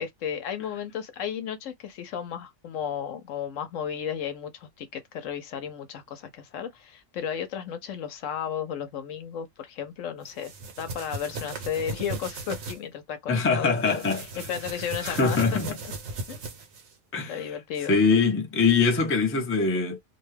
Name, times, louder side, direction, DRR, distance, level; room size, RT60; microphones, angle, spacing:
voice 1, 0.0-10.5 10.8-15.6 16.3-16.4 17.3-18.0, left 8 dB, 75° left, 1.0 m, -34 dB
clothing movement, 10.3-12.8 13.8-16.9, right 3 dB, 80° right, 1.3 m, -37 dB
voice 2, 13.3-14.4 15.0-15.7 17.1-17.5 17.9-20.0, left 4 dB, 15° left, 0.5 m, -23 dB
2.7 x 2.2 x 3.2 m
omnidirectional pair, 1.4 m